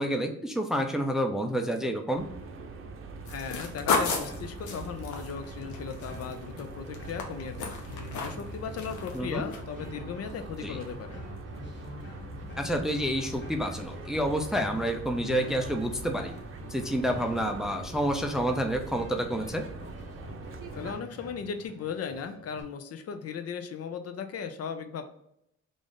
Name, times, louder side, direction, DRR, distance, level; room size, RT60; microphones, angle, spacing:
voice 1, 0.0-2.2 9.1-9.5 10.6-10.8 12.6-16.3 16.7-19.6, equal, ahead, 5 dB, 0.4 m, -29 dB
sound 1, 2.1-20.9, right 3 dB, 45° right, 0.6 m, -42 dB
sound 2, 3.3-6.6 6.9-8.5 8.8-9.2 9.5-9.6, left 4 dB, 75° left, 0.8 m, -32 dB
voice 2, 3.3-11.2 20.8-25.1, left 6 dB, 55° left, 7 dB, 0.5 m, -37 dB
sound 3, 3.7-22.6, left 1 dB, 40° left, 1.1 m, -46 dB
3.3 x 2.5 x 3.8 m, 0.79 s
cardioid pair, 90°, 30 cm